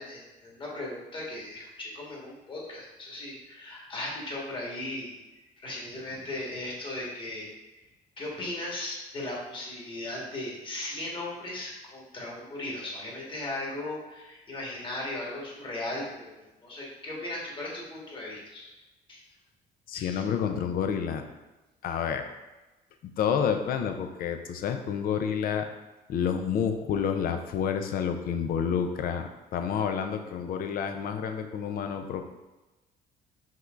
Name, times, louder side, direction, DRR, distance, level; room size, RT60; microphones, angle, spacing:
voice 1, 0.0-5.1 5.6-7.8 8.2-16.3 16.6-18.7 19.1-19.2 19.9-20.2, left 1 dB, 30° left, -4 dB, 1.5 m, -37 dB
voice 2, 19.9-21.3 21.8-22.3 23.2-25.7 26.1-32.2, left 7 dB, 60° left, 6 dB, 0.5 m, -29 dB
5.6 x 3.2 x 2.5 m, 1.1 s
cardioid pair, 110°, 17 cm